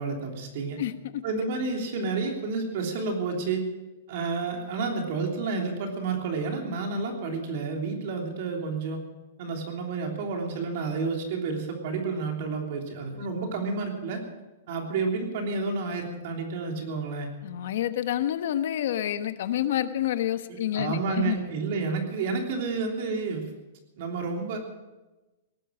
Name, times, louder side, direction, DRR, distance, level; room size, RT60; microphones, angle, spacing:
voice 1, 0.0-0.8 1.2-3.6 4.1-9.0 9.4-14.2 14.7-17.3 20.5-23.5 24.0-24.6, right 4 dB, 50° right, 2 dB, 3.2 m, -30 dB
voice 2, 0.8-1.2 17.4-21.4, left 11 dB, 60° left, 10 dB, 1.2 m, -28 dB
18.0 x 12.0 x 6.3 m, 1.1 s
hypercardioid pair, 160°, 0 cm